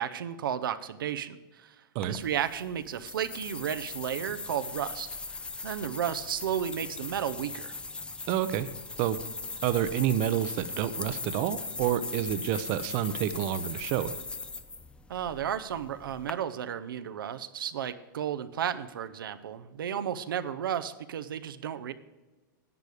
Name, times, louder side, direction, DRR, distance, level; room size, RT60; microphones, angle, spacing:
voice 1, 0.0-1.8 2.0-5.1 5.6-7.7 15.1-21.9, right 9 dB, 90° right, 10 dB, 0.6 m, -33 dB
sound 1, 2.0-16.3, left 3 dB, 10° left, 0.5 m, -40 dB
voice 2, 8.3-8.7 9.0-9.2 9.6-14.2, right 11 dB, 45° right, 13 dB, 0.6 m, -28 dB
11.0 x 8.3 x 4.9 m, 1.2 s
hypercardioid pair, 130°, 11 cm